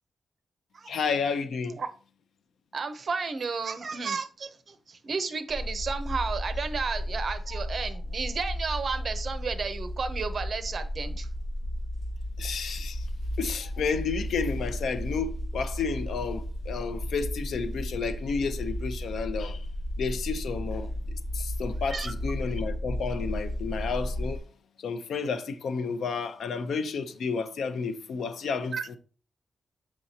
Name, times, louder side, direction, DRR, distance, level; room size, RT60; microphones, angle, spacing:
voice 1, 0.9-1.8 12.4-13.1 13.4-19.7 20.0-24.4 24.8-29.0, left 5 dB, 90° left, 0.6 m, -31 dB
voice 2, 2.7-11.3 21.9-22.1 28.7-28.9, right 5 dB, 45° right, 0.7 m, -32 dB
sound 1, 5.5-24.4, equal, 65° left, 1.7 m, -34 dB
7.6 x 6.0 x 2.8 m
wide cardioid pair, 155°, 0 cm